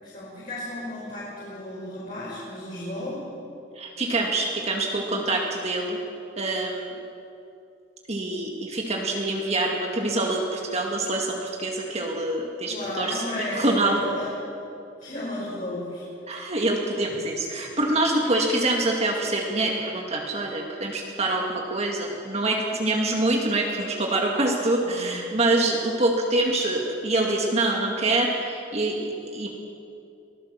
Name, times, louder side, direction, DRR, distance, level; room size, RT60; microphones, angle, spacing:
voice 1, 0.0-3.2 12.7-14.3 15.0-16.1 17.1-17.2 24.8-25.2, left 1 dB, 40° left, -8 dB, 5.7 m, -34 dB
voice 2, 3.8-6.0 6.4-6.9 8.1-14.0 16.3-29.5, right 2 dB, 35° right, 0 dB, 2.0 m, -25 dB
23.5 x 16.0 x 7.4 m, 2.6 s
head